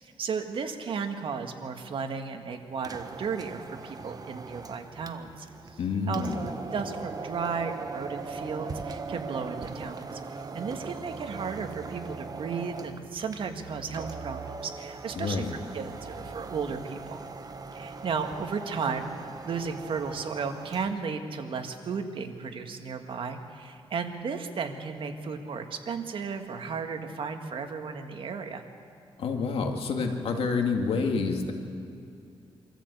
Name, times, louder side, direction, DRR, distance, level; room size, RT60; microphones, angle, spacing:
voice 1, 0.0-5.5 6.1-17.2 17.7-28.6, right 5 dB, 60° right, 5 dB, 1.8 m, -34 dB
sound 1, 2.7-21.0, right 4 dB, 40° right, 1.2 m, -40 dB
voice 2, 5.8-6.4 15.2-15.5 29.2-31.5, left 4 dB, 75° left, 3 dB, 2.3 m, -28 dB
24.5 x 14.0 x 8.3 m, 2.5 s
cardioid pair, 100°, 10 cm